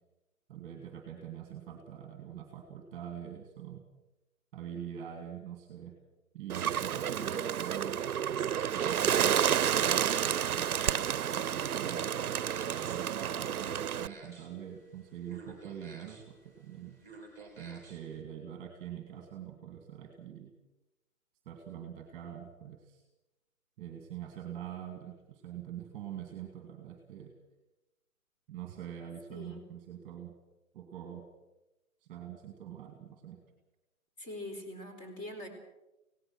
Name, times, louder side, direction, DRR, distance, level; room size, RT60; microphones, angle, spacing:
voice 1, 0.5-3.8 4.5-5.9 6.3-8.0 8.7-10.3 10.6-11.0 11.3-12.1 12.7-17.0 17.6-20.5 21.5-23.0 23.8-27.3 28.5-30.3 30.7-31.3 32.1-33.4, right 9 dB, 15° right, 4 dB, 2.2 m, -44 dB
Bird, 6.5-14.1, right 9 dB, 80° right, 0.7 m, -30 dB
sound 1, 8.0-18.2, right 3 dB, 5° left, 3.4 m, -53 dB
voice 2, 29.3-29.6 34.2-35.5, left 1 dB, 25° left, 4 dB, 4.4 m, -43 dB
25.5 x 18.0 x 6.1 m, 0.97 s
hypercardioid pair, 160°, 43 cm